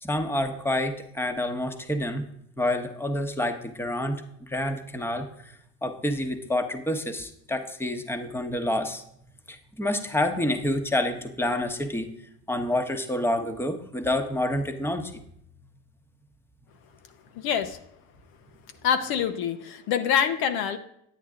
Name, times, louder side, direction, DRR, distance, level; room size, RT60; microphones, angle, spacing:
voice 1, 0.0-2.2 2.6-5.5 5.8-9.0 9.5-12.1 12.5-15.2, left 1 dB, 5° left, 6 dB, 1.1 m, -28 dB
voice 2, 17.4-17.8 18.8-20.8, left 8 dB, 60° left, 8 dB, 0.9 m, -25 dB
9.3 x 9.2 x 3.7 m, 0.72 s
hypercardioid pair, 70°, 41 cm